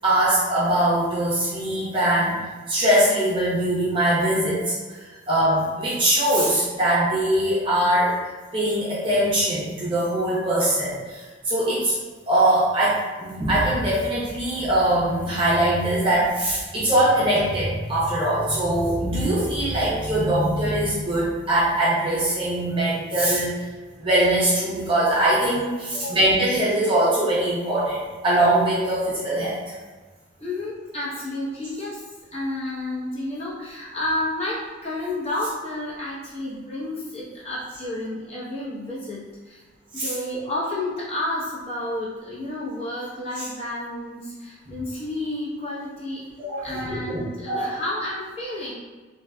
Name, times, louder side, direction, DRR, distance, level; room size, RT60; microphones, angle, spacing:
voice 1, 0.0-2.4 2.7-11.9 12.3-23.5 24.0-29.8 39.9-40.1 46.7-47.7, right 1 dB, 25° right, -8 dB, 0.6 m, -22 dB
voice 2, 25.9-26.3 30.4-32.0 32.3-39.6 39.9-48.7, left 1 dB, 30° left, -8 dB, 0.8 m, -31 dB
2.6 x 2.2 x 2.3 m, 1.4 s
head